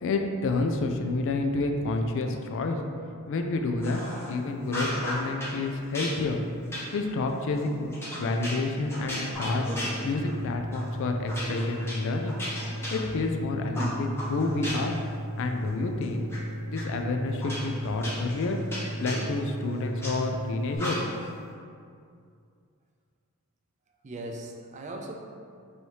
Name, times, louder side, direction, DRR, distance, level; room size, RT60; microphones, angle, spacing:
voice 1, 0.0-2.8 3.3-4.0 4.3-6.4 6.9-7.9 8.2-9.6 10.0-12.4 12.9-14.9 15.4-16.3 16.7-18.6 19.0-21.1, left 3 dB, 60° left, 4 dB, 0.3 m, -29 dB
sound 1, 3.8-4.3 4.6-5.6 5.9-10.4 10.7-10.9 11.3-13.4 13.7-15.0 15.4-16.4 16.7-16.8 17.4-20.1 20.8-21.3, equal, 10° left, 0.8 m, -36 dB
sound 2, 9.3-20.8, equal, 40° left, 0.9 m, -36 dB
voice 2, 23.9-25.1, right 1 dB, 35° right, 2 dB, 0.4 m, -39 dB
3.2 x 2.7 x 4.5 m, 2.3 s
head